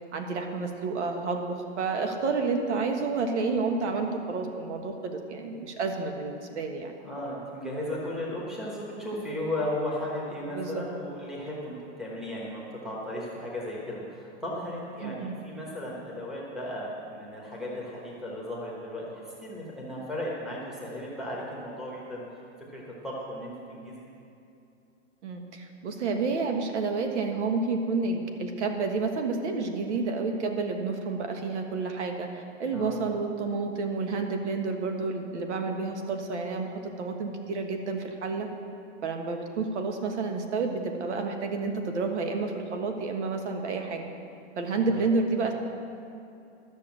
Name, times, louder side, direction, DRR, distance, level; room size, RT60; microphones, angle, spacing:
voice 1, 0.1-6.9 10.5-10.8 15.0-15.3 25.2-38.5 39.0-44.1 44.6-45.5, right 4 dB, 75° right, 4 dB, 1.5 m, -30 dB
voice 2, 7.0-22.2 22.7-24.1 32.7-33.1 44.9-45.1, left 1 dB, ahead, -6 dB, 1.1 m, -35 dB
12.5 x 6.5 x 7.4 m, 2.7 s
supercardioid pair, 170°, 35 cm